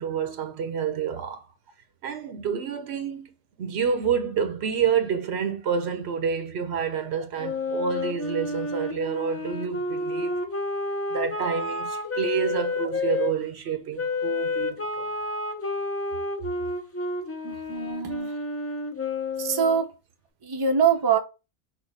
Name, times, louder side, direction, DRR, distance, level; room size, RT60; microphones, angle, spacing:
voice 1, 0.0-1.5 2.0-3.3 3.6-10.5 11.1-15.1, right 7 dB, 80° right, 1.0 m, -28 dB
Wind instrument woodwind instrument, 7.4-13.3 14.0-19.8, left 2 dB, 20° left, 0.4 m, -30 dB
voice 2, 17.4-18.3 19.4-19.9 20.4-21.2, right 6 dB, 30° right, 0.5 m, -24 dB
6.0 x 2.2 x 3.3 m
omnidirectional pair, 1.1 m